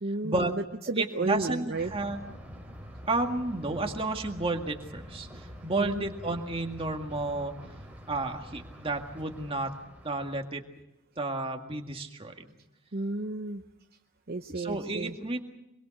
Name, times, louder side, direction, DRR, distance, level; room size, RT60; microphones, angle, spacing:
voice 1, 0.0-1.9 5.8-6.1 12.9-13.6 14.3-15.2, right 2 dB, 45° right, 5 dB, 0.8 m, -32 dB
voice 2, 1.0-2.2 3.1-7.5 8.1-9.7 10.0-10.6 11.2-12.5 14.5-15.4, right 2 dB, 25° right, 4 dB, 1.9 m, -31 dB
Thunder, 1.7-10.6, equal, 10° right, 3.0 m, -46 dB
24.5 x 22.5 x 6.5 m, 0.87 s
head